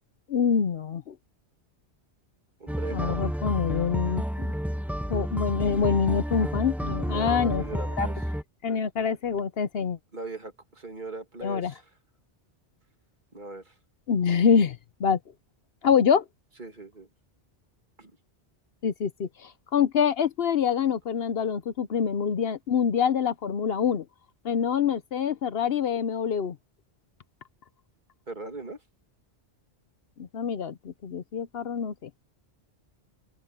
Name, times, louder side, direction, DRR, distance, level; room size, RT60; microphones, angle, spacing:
voice 1, 0.3-1.1 2.9-4.5 5.1-8.1 8.6-10.0 11.4-11.7 14.1-15.2 15.8-16.2 18.8-24.0 24.4-26.6 30.2-32.1, left 7 dB, 65° left, 0.9 m, -26 dB
voice 2, 2.6-3.2 7.1-8.1 10.1-11.9 13.3-13.7 16.6-17.1 18.0-18.1 28.3-28.8, right 3 dB, 45° right, 2.5 m, -39 dB
sound 1, 2.7-8.4, equal, ahead, 1.0 m, -30 dB
open air
omnidirectional pair, 1.1 m